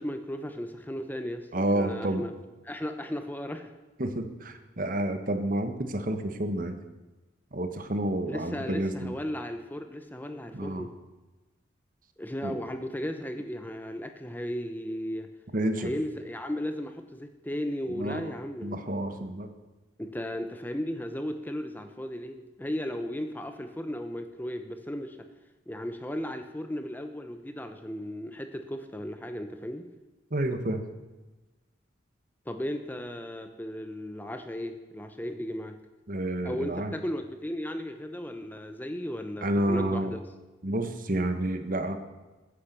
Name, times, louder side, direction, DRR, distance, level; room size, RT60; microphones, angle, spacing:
voice 1, 0.0-2.3 2.6-3.7 8.3-10.9 12.2-15.3 15.8-18.8 20.0-25.2 25.7-29.9 32.5-35.7 36.4-40.2, equal, 10° left, 7 dB, 0.8 m, -35 dB
voice 2, 1.5-2.3 4.0-6.8 7.5-9.1 10.5-10.8 12.4-12.6 15.5-15.9 18.0-18.2 18.6-19.5 30.3-30.8 36.1-36.9 39.4-40.1 40.6-42.0, right 1 dB, 45° right, 8 dB, 1.3 m, -29 dB
14.5 x 10.0 x 6.9 m, 1.2 s
head